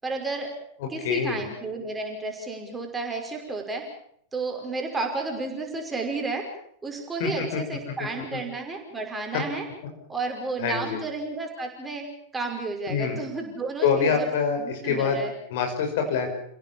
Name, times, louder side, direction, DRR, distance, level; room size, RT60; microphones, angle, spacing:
voice 1, 0.0-0.5 0.9-3.8 4.3-6.4 6.8-9.7 10.1-12.0 12.3-14.3 14.6-15.3, right 3 dB, 10° right, 2 dB, 5.7 m, -32 dB
voice 2, 1.0-1.4 7.2-7.6 8.3-8.4 10.6-11.0 12.9-13.2 13.8-15.2 15.5-16.3, left 6 dB, 55° left, 4 dB, 5.8 m, -25 dB
30.0 x 17.0 x 7.2 m, 0.67 s
figure-of-eight pair, 90°, 0 cm